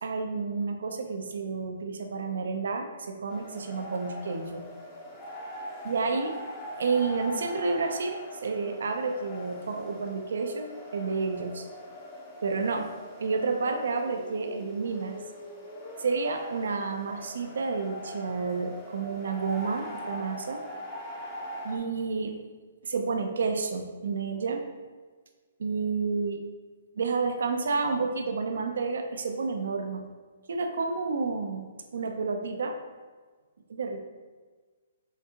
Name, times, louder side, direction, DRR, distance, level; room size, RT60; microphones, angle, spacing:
voice 1, 0.0-4.6 5.8-6.3 6.8-11.7 12.4-12.9 13.2-15.2 16.0-20.6 21.6-22.4 22.8-24.6 25.6-26.4 27.0-30.1 30.5-31.7 31.9-32.8 33.7-34.0, right 4 dB, 75° right, 4 dB, 0.5 m, -30 dB
sound 1, 3.3-21.8, left 1 dB, 15° left, 0.8 m, -42 dB
5.8 x 2.7 x 2.8 m, 1.4 s
hypercardioid pair, 145°, 0 cm